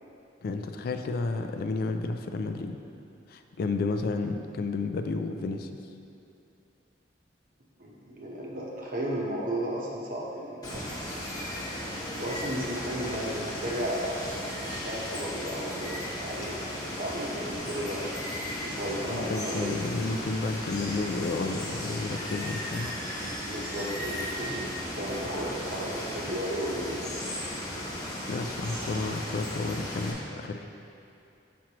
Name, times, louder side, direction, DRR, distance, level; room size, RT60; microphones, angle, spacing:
voice 1, 0.4-2.8 3.3-5.7 19.0-22.9 28.3-30.7, left 3 dB, 55° left, 7 dB, 0.3 m, -31 dB
voice 2, 7.8-11.0 12.0-18.1 18.6-19.8 23.5-27.2, equal, 50° right, -3 dB, 1.0 m, -34 dB
Water, 10.6-30.1, left 1 dB, 20° left, 0.9 m, -36 dB
6.2 x 5.8 x 2.9 m, 2.6 s
head